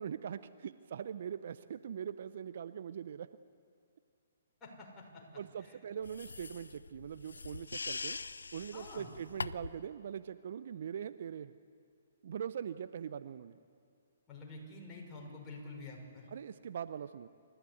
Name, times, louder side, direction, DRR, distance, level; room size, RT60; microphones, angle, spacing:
voice 1, 0.0-3.3 5.4-8.2 8.5-11.5 12.2-13.6 16.3-17.3, right 8 dB, 55° right, 14 dB, 0.6 m, -42 dB
voice 2, 4.6-5.2 5.6-5.7 8.7-9.1 14.3-16.3, left 2 dB, 20° left, -2 dB, 5.9 m, -48 dB
sound 1, 6.0-9.9, left 4 dB, 80° left, 0.5 m, -43 dB
27.5 x 14.5 x 8.4 m, 2.4 s
figure-of-eight pair, 130°, 0 cm